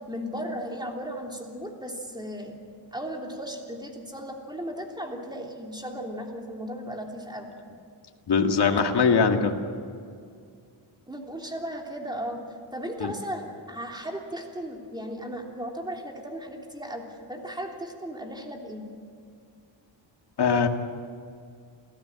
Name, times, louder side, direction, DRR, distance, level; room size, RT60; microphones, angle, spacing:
voice 1, 0.1-2.6 2.9-7.5 11.1-12.4 12.7-18.8, equal, 10° right, 1 dB, 3.2 m, -36 dB
voice 2, 8.3-9.6 13.0-13.1 20.4-20.7, left 5 dB, 55° left, 4 dB, 2.0 m, -21 dB
28.5 x 16.0 x 9.0 m, 2.3 s
wide cardioid pair, 140°, 47 cm